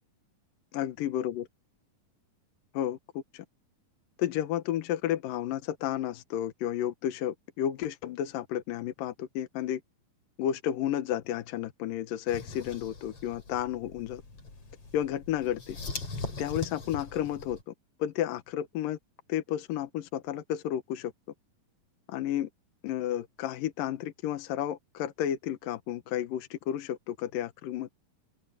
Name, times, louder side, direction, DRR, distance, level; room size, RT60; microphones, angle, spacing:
voice 1, 0.7-1.4 2.7-3.4 4.2-9.8 10.4-14.2 14.9-15.8 16.4-17.7 18.0-19.0 19.3-21.1 22.1-22.5 22.8-28.0, left 11 dB, 80° left, 2.8 m, -32 dB
sound 1, 12.3-17.6, left 3 dB, 45° left, 5.5 m, -41 dB
open air
omnidirectional pair, 4.0 m